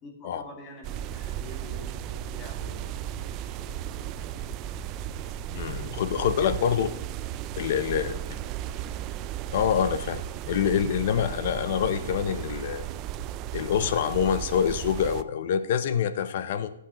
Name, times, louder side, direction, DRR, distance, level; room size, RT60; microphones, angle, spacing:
voice 1, 0.0-5.0 6.1-6.2 7.7-9.3, left 2 dB, 20° left, 1 dB, 2.1 m, -47 dB
sound 1, 0.8-15.2, right 11 dB, 30° right, 0.4 m, -35 dB
voice 2, 5.5-6.9 7.6-8.1 9.5-10.2 10.5-12.8 13.5-16.7, left 8 dB, 50° left, 12 dB, 0.7 m, -26 dB
14.0 x 8.2 x 3.0 m, 0.84 s
hypercardioid pair, 150°, 0 cm